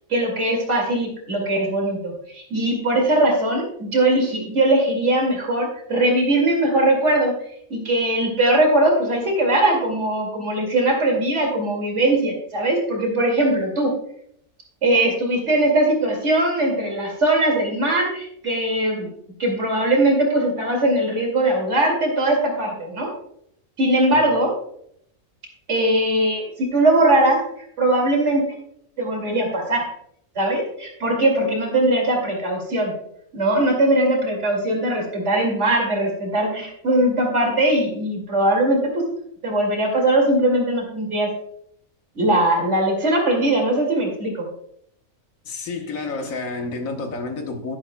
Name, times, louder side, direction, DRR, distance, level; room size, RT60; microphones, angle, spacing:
voice 1, 0.1-7.3 7.7-13.9 14.8-19.1 19.4-23.1 23.8-24.5 25.7-27.4 27.8-28.5 29.0-29.9 30.4-32.9 33.3-39.1 39.4-41.3 42.2-44.5, right 1 dB, 55° right, 2.6 m, -20 dB
voice 2, 45.4-47.8, left 3 dB, 70° left, 1.5 m, -29 dB
11.5 x 10.0 x 2.2 m
omnidirectional pair, 1.4 m